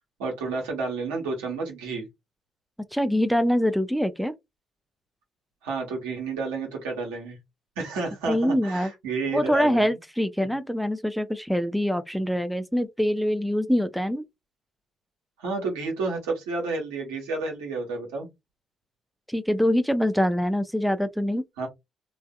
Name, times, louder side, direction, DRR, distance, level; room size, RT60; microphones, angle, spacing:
voice 1, 0.2-2.0 5.6-7.4 7.8-9.9 15.4-18.3 21.6-21.7, right 4 dB, 80° right, 1.1 m, -30 dB
voice 2, 2.9-4.3 8.3-8.9 9.3-14.3 19.3-21.4, equal, ahead, 0.4 m, -24 dB
2.5 x 2.4 x 2.3 m
hypercardioid pair, 45°, 0 cm